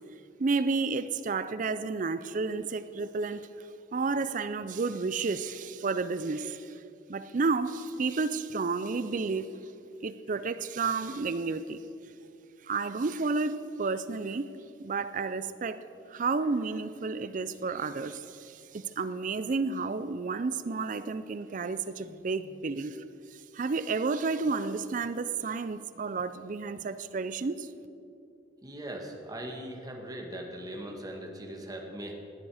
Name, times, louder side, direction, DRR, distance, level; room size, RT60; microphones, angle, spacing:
voice 1, 0.4-3.5 3.9-6.8 7.1-9.5 10.0-11.8 12.6-14.4 14.8-23.0 23.3-27.7, right 4 dB, 45° right, 0.4 m, -31 dB
voice 2, 28.6-32.1, right 1 dB, 20° right, 1.6 m, -40 dB
18.5 x 9.9 x 4.9 m
head